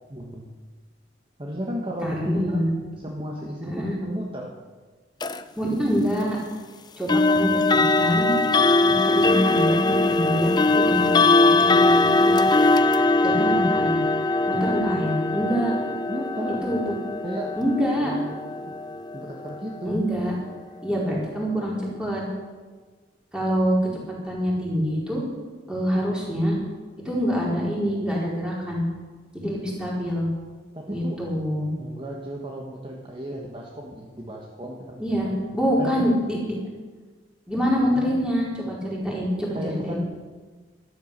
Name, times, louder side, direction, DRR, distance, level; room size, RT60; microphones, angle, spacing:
voice 1, 0.1-0.5 1.4-2.7 3.0-4.5 16.1-16.7 17.2-17.6 18.0-18.7 19.1-20.0 30.7-31.2 31.8-35.4 35.8-36.2 37.9-38.3 39.5-40.0, equal, 25° right, -1 dB, 1.4 m, -34 dB
voice 2, 2.0-2.7 3.7-4.0 5.6-6.4 7.0-8.4 8.8-11.2 11.5-12.4 13.2-14.0 14.5-15.7 16.6-16.9 17.6-18.2 19.8-20.3 20.8-22.2 23.3-23.8 24.2-25.2 25.7-26.6 27.0-28.9 29.3-30.3 30.9-31.7 35.0-35.3 35.5-36.5 37.5-39.6 39.8-40.0, equal, 5° right, -5 dB, 4.5 m, -25 dB
sound 1, 5.2-5.4 7.1-19.9, left 2 dB, 20° left, 0.5 m, -21 dB
13.0 x 12.5 x 6.7 m, 1.4 s
head